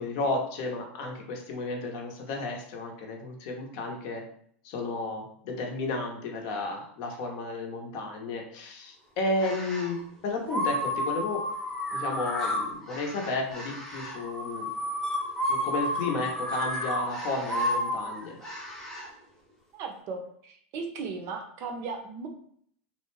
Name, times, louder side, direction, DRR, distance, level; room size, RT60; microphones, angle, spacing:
voice 1, 0.0-4.2 4.6-11.4 11.9-14.7 15.5-18.4, left 2 dB, 55° left, 2 dB, 0.7 m, -33 dB
sound 1, 9.4-10.0 10.5-19.1, left 1 dB, 5° left, 0.7 m, -31 dB
voice 2, 19.7-22.3, right 4 dB, 45° right, 4 dB, 0.5 m, -37 dB
2.4 x 2.1 x 3.1 m, 0.63 s
supercardioid pair, 120°, 6 cm